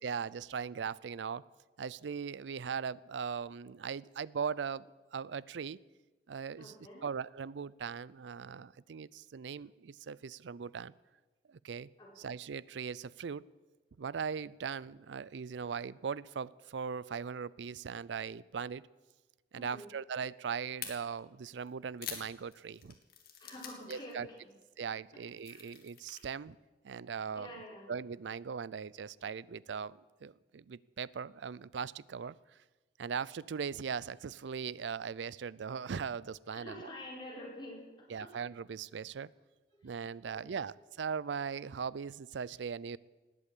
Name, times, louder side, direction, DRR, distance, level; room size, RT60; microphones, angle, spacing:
voice 1, 0.0-1.4 1.8-5.8 6.3-10.9 11.5-11.9 12.2-13.4 14.0-18.9 19.5-23.0 23.9-24.3 24.8-26.6 26.8-27.5 27.9-32.4 33.0-36.9 38.1-39.3 39.8-43.0, right 6 dB, 80° right, 21 dB, 0.4 m, -39 dB
voice 2, 6.6-7.1 12.0-12.3 19.5-19.9 23.4-24.2 25.5-25.7 27.3-27.9 36.5-38.3 39.9-40.0 40.3-40.7, left 1 dB, 25° left, -3 dB, 4.6 m, -48 dB
sound 1, 20.8-20.9 21.6-24.1 24.4-24.6 25.1-26.2, left 9 dB, 60° left, 2.4 m, -45 dB
19.0 x 8.5 x 8.4 m, 1.2 s
head